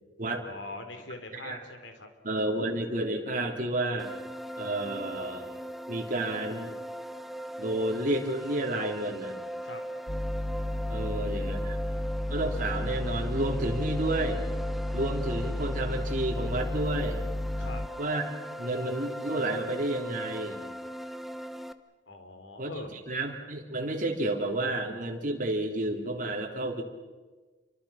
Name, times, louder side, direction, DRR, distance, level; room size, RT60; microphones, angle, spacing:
voice 1, 0.4-2.1 9.6-9.8 10.9-12.1 17.6-17.8 22.1-23.0, left 2 dB, 80° left, 6 dB, 3.6 m, -44 dB
voice 2, 2.2-4.1 4.6-5.5 5.9-6.8 7.6-9.3 10.9-11.8 12.3-14.4 14.9-17.2 18.0-20.6 22.6-26.8, right 1 dB, 45° right, 1 dB, 3.6 m, -31 dB
sound 1, 4.0-21.7, equal, ahead, 0.9 m, -39 dB
sound 2, 10.1-17.9, left 1 dB, 20° left, 0.6 m, -32 dB
29.0 x 24.5 x 5.9 m, 1.3 s
head